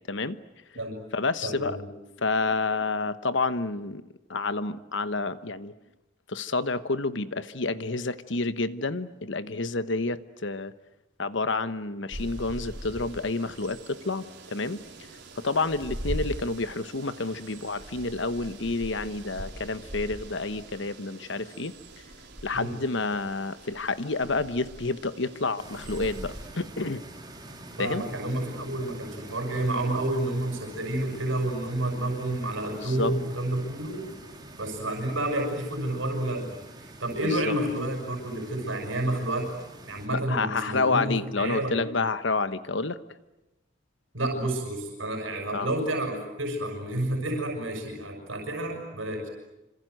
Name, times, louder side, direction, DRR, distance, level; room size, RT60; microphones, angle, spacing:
voice 1, 0.1-0.4 1.1-1.8 2.2-5.7 6.3-10.7 11.2-14.8 15.4-21.7 22.4-27.0 27.8-28.1 32.8-33.1 37.2-37.5 40.1-43.0 45.5-45.7, left 3 dB, 65° left, 12 dB, 1.2 m, -29 dB
voice 2, 1.4-1.9 22.5-22.8 27.8-34.1 34.6-36.5 36.8-39.5 39.9-41.8 44.1-49.3, right 1 dB, 85° right, 2 dB, 6.1 m, -30 dB
sound 1, 12.1-26.5, right 1 dB, 60° right, 4.9 m, -41 dB
sound 2, 25.6-40.1, right 2 dB, 20° right, 3.9 m, -46 dB
26.5 x 26.5 x 7.9 m, 1.0 s
head